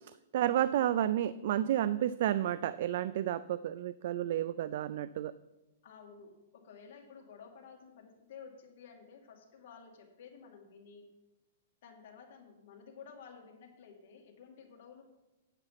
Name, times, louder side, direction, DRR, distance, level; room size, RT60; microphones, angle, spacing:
voice 1, 0.0-5.3, right 11 dB, 60° right, 15 dB, 0.3 m, -31 dB
voice 2, 0.7-1.1 5.8-11.1 11.8-15.0, left 6 dB, 55° left, 0 dB, 2.5 m, -53 dB
9.0 x 7.9 x 5.8 m, 1.0 s
hypercardioid pair, 150°, 0 cm